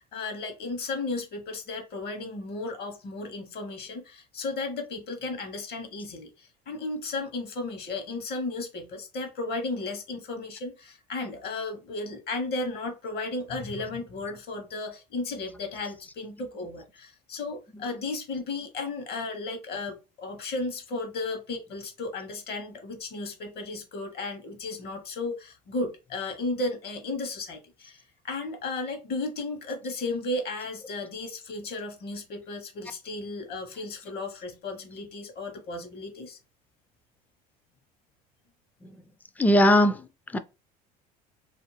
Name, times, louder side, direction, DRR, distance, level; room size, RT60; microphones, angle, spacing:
voice 1, 0.1-36.4, left 3 dB, 55° left, 1.0 m, -34 dB
voice 2, 39.4-40.4, equal, 10° left, 0.3 m, -21 dB
2.5 x 2.1 x 3.1 m
hypercardioid pair, 75°, 20 cm